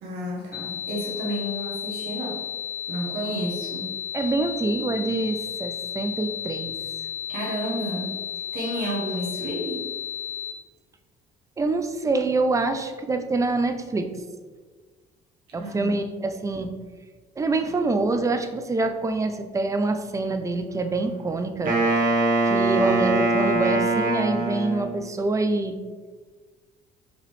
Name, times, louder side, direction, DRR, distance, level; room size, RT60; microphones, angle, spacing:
voice 1, 0.0-2.4 2.9-3.9 7.3-8.2 8.5-9.9 15.5-16.0, equal, 75° right, -4 dB, 1.2 m, -31 dB
sound 1, 0.5-10.5, left 9 dB, 60° left, 1.0 m, -33 dB
voice 2, 4.1-6.7 11.6-14.1 15.5-16.7 17.4-21.7 22.4-25.8, right 3 dB, 20° right, 7 dB, 0.4 m, -25 dB
Wind instrument woodwind instrument, 21.6-25.1, right 2 dB, 50° right, 1.2 m, -22 dB
5.0 x 3.1 x 3.1 m, 1.4 s
cardioid pair, 110°, 17 cm